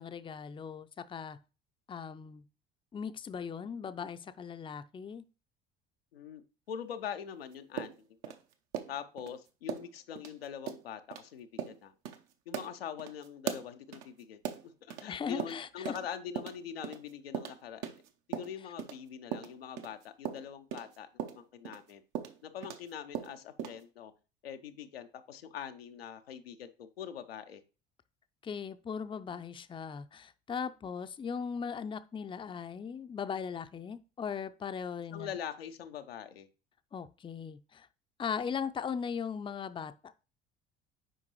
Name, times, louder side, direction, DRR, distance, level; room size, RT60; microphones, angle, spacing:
voice 1, 0.0-1.4 1.9-2.4 2.9-5.2 15.1-16.0 28.4-35.4 36.9-37.9 38.2-39.9, left 6 dB, 15° left, 0.5 m, -38 dB
voice 2, 6.7-7.9 8.3-8.4 8.9-11.9 12.5-14.4 14.8-17.9 18.3-22.0 22.4-24.1 24.4-27.6 35.1-36.5, left 8 dB, 80° left, 0.6 m, -43 dB
sound 1, 7.8-9.3 9.7-9.9 10.2-10.3 10.7-10.8 11.1-11.2 11.6-11.8 12.1-12.2 12.5-15.1 15.4-16.1 16.4-19.0 19.3-22.9 23.1-23.8, right 9 dB, 60° right, 0.9 m, -39 dB
7.8 x 5.1 x 3.1 m
figure-of-eight pair, 55°, 30 cm